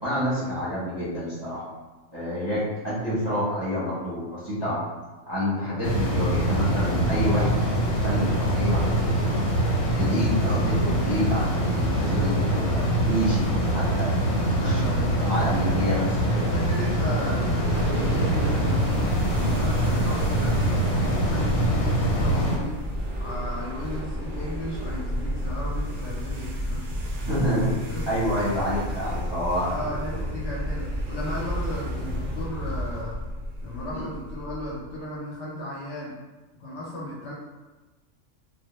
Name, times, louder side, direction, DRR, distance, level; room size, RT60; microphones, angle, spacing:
voice 1, 0.0-1.6 2.1-4.8 5.3-9.3 10.0-14.1 14.5-14.8 15.2-16.5 27.2-27.8 28.1-29.7 30.1-30.2 33.9-34.1, equal, 25° right, -10 dB, 0.7 m, -28 dB
sound 1, 5.8-22.6, right 1 dB, 90° left, 1.0 m, -24 dB
voice 2, 14.6-15.2 15.7-15.8 16.5-19.0 19.3-22.8 23.2-27.0 27.5-28.1 28.9-29.0 29.7-33.2 33.6-36.1 36.6-37.3, left 1 dB, 65° left, -5 dB, 0.8 m, -35 dB
sound 2, 17.6-34.9, equal, 65° right, 0.5 m, -32 dB
2.2 x 2.0 x 2.9 m, 1.2 s
omnidirectional pair, 1.4 m